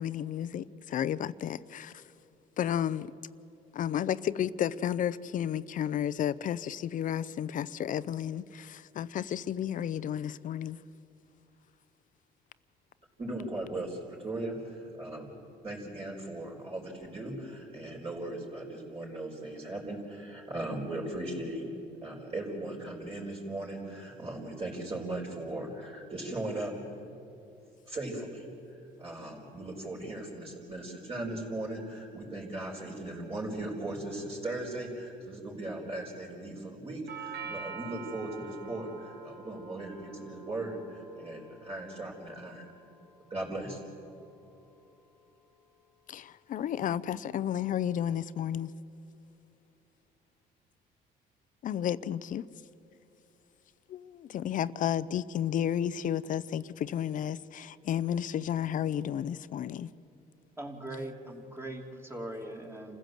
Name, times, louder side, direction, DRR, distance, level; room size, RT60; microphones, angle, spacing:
voice 1, 0.0-2.0 2.6-3.1 3.7-10.8 46.1-48.7 51.6-52.4 53.9-59.9, left 10 dB, 50° left, 0.6 m, -32 dB
voice 2, 13.2-15.4 15.6-21.7 22.0-26.7 27.9-42.7 43.3-43.8, right 2 dB, 35° right, 4.6 m, -38 dB
Doorbell, 37.1-45.1, right 5 dB, 85° right, 2.4 m, -47 dB
voice 3, 60.6-63.0, right 1 dB, 15° right, 2.7 m, -40 dB
28.0 x 15.5 x 7.8 m
cardioid pair, 110°, 17 cm